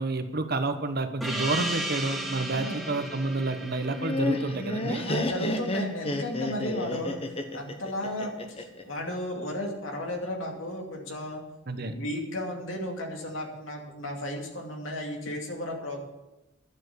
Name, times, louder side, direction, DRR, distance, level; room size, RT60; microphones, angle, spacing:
voice 1, 0.0-5.0 11.7-11.9, right 3 dB, 55° right, 8 dB, 1.1 m, -29 dB
Gong, 1.2-6.3, right 1 dB, ahead, 1.3 m, -36 dB
voice 2, 2.5-3.0 5.0-7.2 7.5-11.4 11.7-16.0, left 1 dB, 85° left, 1 dB, 2.5 m, -34 dB
Laughter, 3.8-8.8, left 1 dB, 30° left, 1.0 m, -31 dB
11.5 x 7.4 x 8.0 m, 1.0 s
head